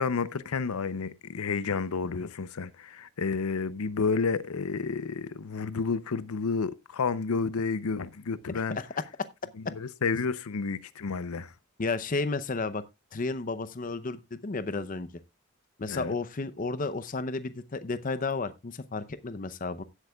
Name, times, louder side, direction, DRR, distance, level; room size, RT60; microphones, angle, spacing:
voice 1, 0.0-8.8 9.8-11.5 15.9-16.1, left 5 dB, 85° left, 0.6 m, -30 dB
voice 2, 11.8-12.8 13.1-15.1 15.8-19.8, left 3 dB, 40° left, 0.6 m, -32 dB
16.5 x 8.1 x 2.3 m
head